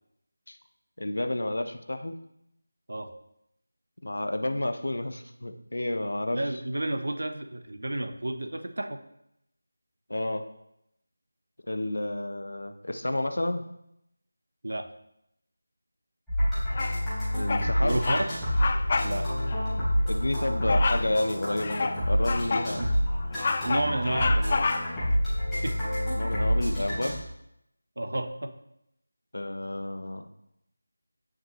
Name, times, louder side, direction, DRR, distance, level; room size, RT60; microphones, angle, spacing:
voice 1, 1.0-2.2 4.0-6.4 10.1-10.4 11.7-13.6 17.3-18.0 20.0-22.9 26.2-27.2 29.3-30.3, left 1 dB, 60° left, 7 dB, 0.9 m, -30 dB
voice 2, 6.3-9.0 14.6-14.9 17.8-18.3 19.0-19.3 22.8-22.9 23.6-24.7 25.6-25.8 28.0-28.5, right 1 dB, 55° right, 8 dB, 1.0 m, -31 dB
sound 1, 16.3-27.2, equal, ahead, 3.9 m, -28 dB
Bird vocalization bird call bird song, 16.7-17.1 17.5-17.7 18.0-18.3 18.6-19.1 19.5-19.6 20.7-21.1 21.6-22.7 23.1-25.1, left 4 dB, 30° left, 0.5 m, -29 dB
16.5 x 6.3 x 3.2 m, 0.81 s
figure-of-eight pair, 165°, 0 cm